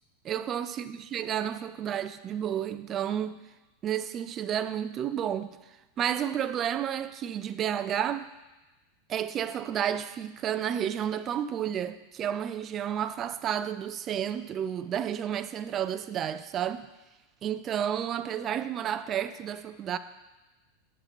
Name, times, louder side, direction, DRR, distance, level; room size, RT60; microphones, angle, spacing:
voice 1, 0.2-3.4 3.8-5.6 6.0-8.3 9.1-16.9 17.4-20.0, right 9 dB, 30° right, 0.3 m, -31 dB
9.1 x 7.3 x 3.0 m
supercardioid pair, 150°, 0 cm